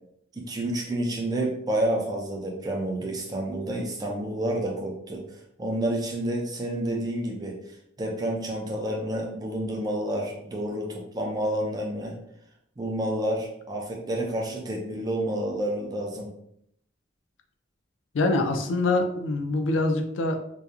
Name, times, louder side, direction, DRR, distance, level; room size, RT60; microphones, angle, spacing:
voice 1, 0.3-5.3 5.6-7.6 8.0-12.2 12.8-16.3, right 1 dB, 20° right, -1 dB, 0.4 m, -29 dB
voice 2, 18.1-20.4, left 2 dB, 75° left, 5 dB, 0.4 m, -24 dB
2.8 x 2.2 x 2.3 m, 0.73 s
head